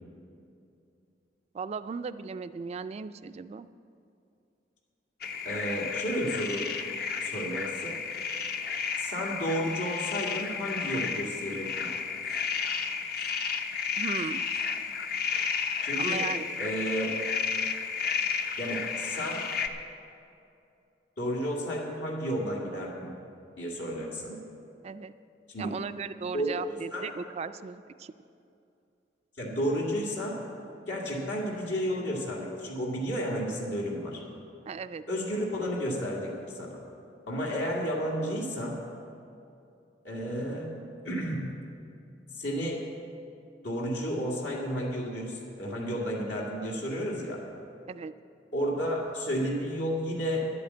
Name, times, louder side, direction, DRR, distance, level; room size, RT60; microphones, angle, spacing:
voice 1, 1.5-3.7 14.0-14.4 16.0-16.5 24.8-25.1 25.6-28.1 34.7-35.0 47.9-48.1, right 5 dB, 35° right, 12 dB, 0.3 m, -37 dB
sound 1, 5.2-19.7, left 6 dB, 60° left, 0.7 m, -32 dB
voice 2, 5.4-6.7 7.2-8.0 9.0-11.7 15.8-16.3 16.6-17.2 18.6-19.5 21.2-23.1 23.6-24.4 25.5-25.7 26.3-27.1 29.4-30.4 30.9-34.2 35.1-36.8 37.3-38.8 40.0-40.7 41.0-41.5 42.3-42.8 43.6-47.4 48.5-50.4, equal, 80° left, -3 dB, 2.1 m, -32 dB
11.0 x 8.4 x 8.2 m, 2.6 s
head